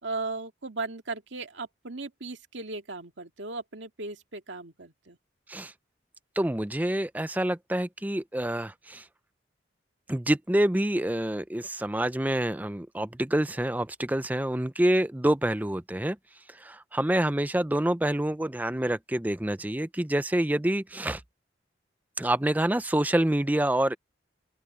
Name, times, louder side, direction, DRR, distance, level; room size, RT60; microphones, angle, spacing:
voice 1, 0.0-5.2, right 3 dB, 80° right, 2.1 m, -37 dB
voice 2, 6.4-9.0 10.1-16.2 16.5-21.2 22.2-24.0, right 1 dB, 10° right, 0.5 m, -27 dB
open air
head